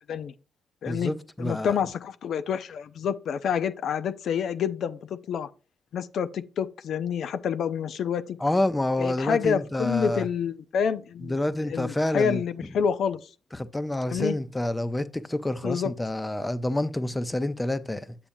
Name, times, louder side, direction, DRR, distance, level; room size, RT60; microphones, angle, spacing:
voice 1, 0.9-1.8 8.4-10.3 11.2-12.4 13.5-18.1, left 1 dB, 15° left, 0.6 m, -28 dB
voice 2, 1.4-5.5 5.9-8.4 9.0-13.2 14.1-14.3 15.6-15.9, left 7 dB, 65° left, 0.4 m, -28 dB
8.6 x 6.8 x 2.6 m
cardioid pair, 90°, 0 cm